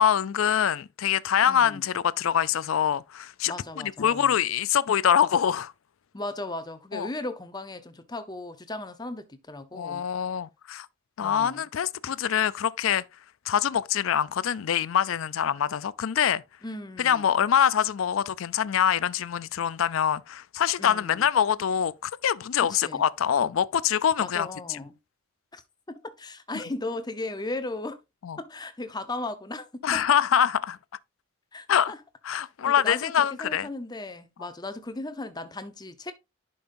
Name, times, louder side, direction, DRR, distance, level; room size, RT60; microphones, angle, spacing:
voice 1, 0.0-5.7 6.9-7.1 9.7-10.9 11.2-13.0 13.5-16.4 17.0-24.8 28.2-28.4 29.8-30.8 31.7-31.9 32.2-33.7, left 9 dB, 70° left, 0.4 m, -24 dB
voice 2, 1.4-1.8 3.5-4.4 6.1-10.1 11.2-11.6 16.6-17.3 20.8-21.3 22.7-23.1 24.2-25.0 25.5-25.6 25.9-28.0 28.4-30.1 31.5-32.0 32.3-36.1, left 2 dB, 20° left, 0.7 m, -37 dB
10.5 x 5.4 x 2.6 m
head